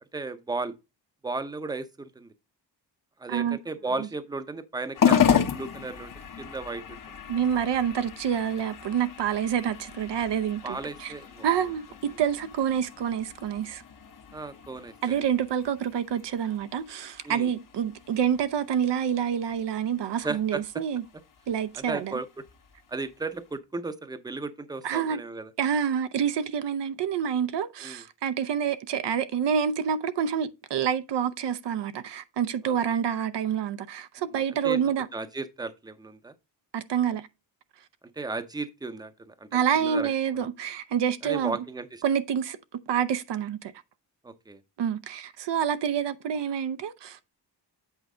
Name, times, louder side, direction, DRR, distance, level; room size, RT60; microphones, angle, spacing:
voice 1, 0.1-0.8 1.2-2.3 3.2-6.8 7.1-7.2 10.6-11.5 12.1-12.2 14.3-15.1 17.2-17.5 20.2-20.6 21.7-22.3 22.9-25.5 27.8-28.0 32.6-32.7 34.3-34.8 35.1-36.3 38.2-40.1 41.2-42.0 44.2-44.6, right 3 dB, 10° right, 0.7 m, -35 dB
voice 2, 3.3-3.6 7.3-11.1 11.4-13.8 15.0-21.0 21.5-22.2 24.8-25.2 25.6-35.1 36.7-37.3 39.5-41.6 42.0-42.6 42.9-43.7 44.8-47.2, right 8 dB, 75° right, 0.7 m, -27 dB
sound 1, 4.9-23.6, left 8 dB, 50° left, 1.0 m, -33 dB
8.3 x 4.5 x 3.8 m
wide cardioid pair, 160°, 42 cm